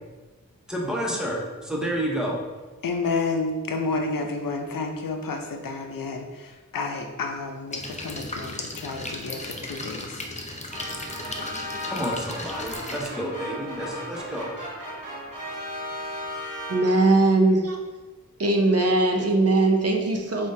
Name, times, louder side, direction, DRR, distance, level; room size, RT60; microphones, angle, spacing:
voice 1, 0.7-2.4 11.8-14.5, equal, ahead, -2 dB, 0.9 m, -29 dB
voice 2, 2.8-10.2, left 3 dB, 85° left, 4 dB, 0.6 m, -30 dB
sound 1, 7.7-13.1, left 2 dB, 20° left, 0.5 m, -36 dB
sound 2, 10.7-17.2, left 1 dB, 75° right, 1.1 m, -36 dB
voice 3, 16.7-17.8 18.4-20.5, right 2 dB, 45° right, 2 dB, 0.6 m, -20 dB
4.9 x 3.6 x 2.7 m, 1.3 s
wide cardioid pair, 85°, 33 cm